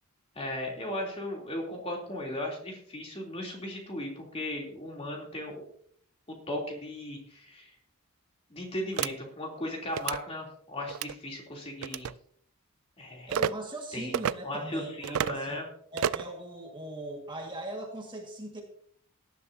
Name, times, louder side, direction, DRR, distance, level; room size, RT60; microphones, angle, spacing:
voice 1, 0.3-5.7 6.3-7.7 8.5-12.1 13.0-13.3 13.9-14.1 14.4-15.7, left 1 dB, 25° left, 0 dB, 3.1 m, -36 dB
sound 1, 9.0-9.1 9.9-10.2 10.9-11.1 11.8-12.1 13.3-13.5 14.1-14.3 15.0-15.4 16.0-16.3, right 8 dB, 70° right, 0.4 m, -30 dB
voice 2, 13.3-15.6 15.9-18.6, right 1 dB, 20° right, 0 dB, 1.8 m, -39 dB
17.5 x 11.5 x 2.8 m, 0.62 s
head